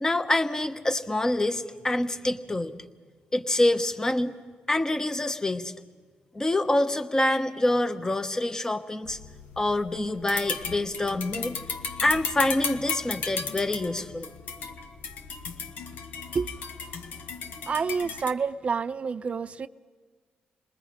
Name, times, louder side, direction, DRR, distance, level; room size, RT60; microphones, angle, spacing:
voice 1, 0.0-2.7 3.3-4.3 4.7-5.7 6.3-9.2 9.6-11.5 12.0-14.3, left 1 dB, 20° left, 1.1 m, -26 dB
sound 1, 9.0-18.3, left 5 dB, 80° left, 1.1 m, -35 dB
voice 2, 17.7-19.7, right 5 dB, 45° right, 0.6 m, -28 dB
28.0 x 20.0 x 5.1 m
cardioid pair, 75°, 3 cm